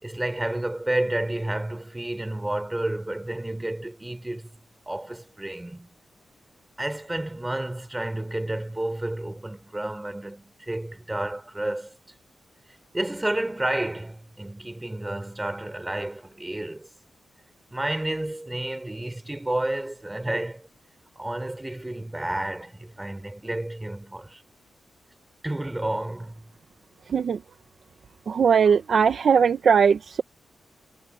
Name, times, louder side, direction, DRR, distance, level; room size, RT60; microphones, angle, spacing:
voice 1, 0.0-4.5 4.9-5.9 6.8-12.0 12.9-16.9 17.7-20.7 21.1-24.4 25.4-26.4, right 1 dB, 10° right, 5.1 m, -30 dB
voice 2, 28.3-30.2, right 6 dB, 55° right, 1.1 m, -19 dB
wide cardioid pair, 160°, 0 cm